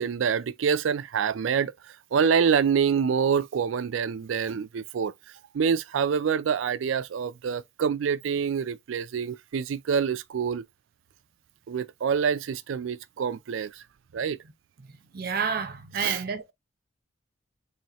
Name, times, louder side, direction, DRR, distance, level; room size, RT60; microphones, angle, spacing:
voice 1, 0.0-1.7 2.1-5.1 5.5-10.7 11.7-13.7 14.1-14.4 16.0-16.2, right 6 dB, 85° right, 0.4 m, -26 dB
voice 2, 14.9-16.5, right 6 dB, 50° right, 0.7 m, -30 dB
4.2 x 3.1 x 2.9 m
head